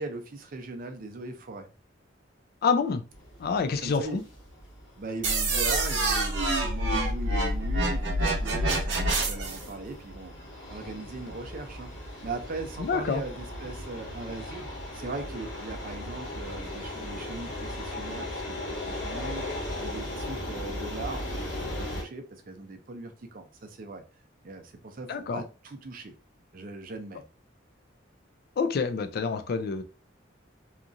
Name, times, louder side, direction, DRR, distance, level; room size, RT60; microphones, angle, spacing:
voice 1, 0.0-1.7 3.8-4.3 5.0-24.0 24.4-26.1 26.5-27.2, right 3 dB, 50° right, 0.5 m, -39 dB
voice 2, 2.6-3.0 3.4-4.2 12.8-13.2 25.1-25.4 28.6-29.8, left 5 dB, 55° left, 0.4 m, -27 dB
sound 1, 3.1-22.0, left 1 dB, 85° left, 1.3 m, -38 dB
sound 2, 5.2-9.6, right 2 dB, 75° right, 0.8 m, -26 dB
2.9 x 2.4 x 2.5 m
head